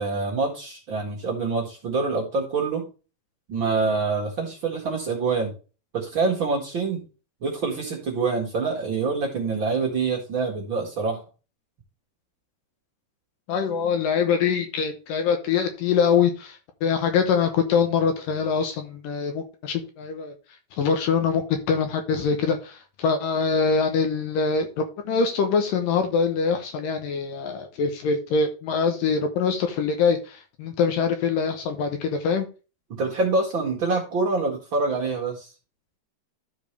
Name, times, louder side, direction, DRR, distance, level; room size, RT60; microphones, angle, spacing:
voice 1, 0.0-2.9 3.5-5.5 5.9-7.0 7.4-11.2 32.9-35.5, right 4 dB, 45° right, -1 dB, 1.8 m, -26 dB
voice 2, 13.5-20.3 20.8-32.5, left 5 dB, 70° left, 6 dB, 2.4 m, -24 dB
13.0 x 4.7 x 3.3 m, 0.32 s
omnidirectional pair, 4.4 m